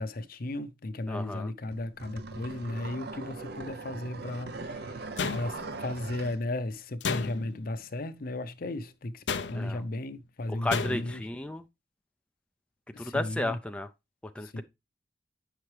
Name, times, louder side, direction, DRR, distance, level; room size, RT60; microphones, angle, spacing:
voice 1, 0.0-5.1 5.3-11.3 12.9-13.6 14.4-14.6, left 1 dB, 55° left, 0.7 m, -35 dB
voice 2, 1.1-1.5 9.5-9.8 10.5-11.6 13.0-13.9 14.4-14.6, left 1 dB, 5° left, 0.4 m, -33 dB
sound 1, 1.7-6.4, right 3 dB, 65° right, 0.7 m, -40 dB
sound 2, 5.2-5.9 7.0-7.7 9.3-9.8 10.7-11.2, left 5 dB, 85° left, 0.6 m, -33 dB
8.4 x 5.9 x 3.3 m
head